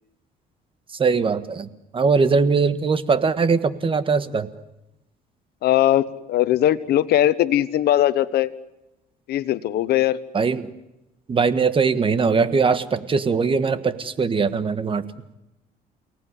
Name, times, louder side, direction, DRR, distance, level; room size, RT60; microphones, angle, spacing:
voice 1, 1.0-4.5 10.3-10.7 11.3-15.0, right 5 dB, 30° right, 13 dB, 1.6 m, -21 dB
voice 2, 5.6-8.5 9.3-10.2, left 12 dB, 70° left, 15 dB, 1.2 m, -20 dB
29.5 x 18.5 x 9.9 m, 0.95 s
cardioid pair, 110°, 17 cm